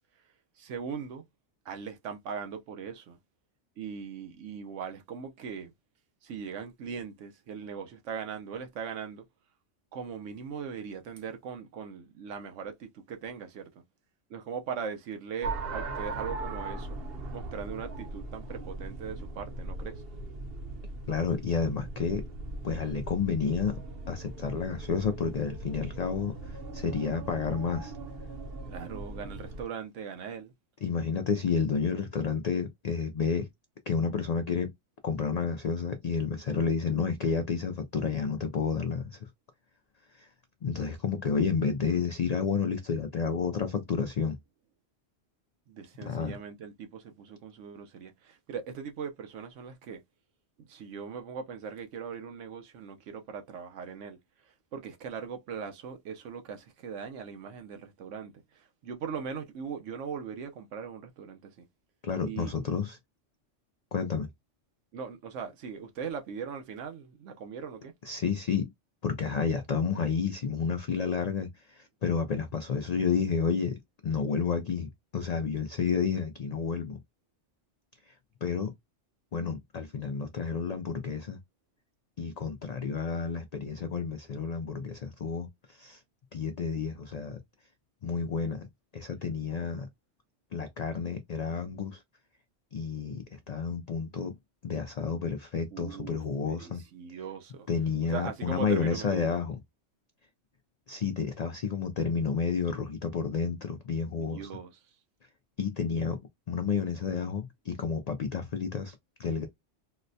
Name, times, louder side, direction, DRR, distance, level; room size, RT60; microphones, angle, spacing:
voice 1, 0.6-1.2 1.6-3.2 3.8-5.7 6.2-9.2 9.9-13.7 14.3-17.0 17.3-20.0 28.7-30.5 45.7-50.0 50.6-54.2 54.5-61.7 62.2-62.5 64.9-67.9 95.7-97.7 98.1-99.3 104.1-104.8, right 6 dB, 85° right, 1.0 m, -40 dB
sound 1, 15.4-29.6, right 2 dB, 60° right, 0.9 m, -39 dB
voice 2, 21.1-22.2 22.6-23.8 24.1-27.9 30.8-33.5 33.9-34.7 35.0-39.3 40.2-40.3 40.6-44.4 46.1-46.3 62.0-63.0 63.9-64.3 68.0-68.7 69.0-77.0 78.4-78.7 79.3-81.4 82.2-86.0 86.3-87.4 88.0-88.7 88.9-89.9 90.5-92.0 92.7-94.4 94.6-96.8 97.7-99.6 100.9-104.5 105.6-106.2 106.5-109.5, left 5 dB, 80° left, 0.3 m, -30 dB
3.9 x 2.1 x 2.6 m
omnidirectional pair, 1.2 m